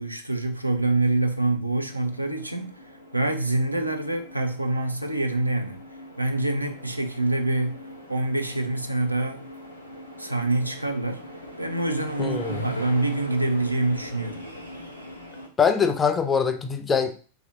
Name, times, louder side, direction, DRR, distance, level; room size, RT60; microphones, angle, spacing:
voice 1, 0.0-2.8 3.1-5.9 6.2-7.8 8.1-9.5 10.2-11.2 11.6-14.4, right 2 dB, 85° right, 0.4 m, -26 dB
sound 1, 1.9-15.5, equal, 90° left, 0.7 m, -42 dB
voice 2, 12.2-12.7 15.6-17.1, left 6 dB, 20° left, 0.4 m, -23 dB
3.1 x 2.7 x 3.6 m
figure-of-eight pair, 90°, 0 cm